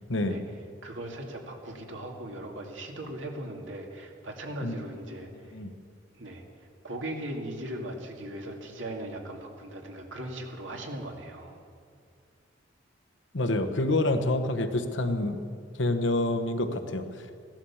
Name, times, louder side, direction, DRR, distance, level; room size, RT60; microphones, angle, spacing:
voice 1, 0.8-5.5 6.1-6.4 6.8-11.6, right 1 dB, 80° right, 2 dB, 2.2 m, -38 dB
voice 2, 13.3-15.4 15.8-17.2, left 2 dB, 75° left, 6 dB, 1.1 m, -27 dB
16.0 x 12.0 x 7.2 m, 2.2 s
head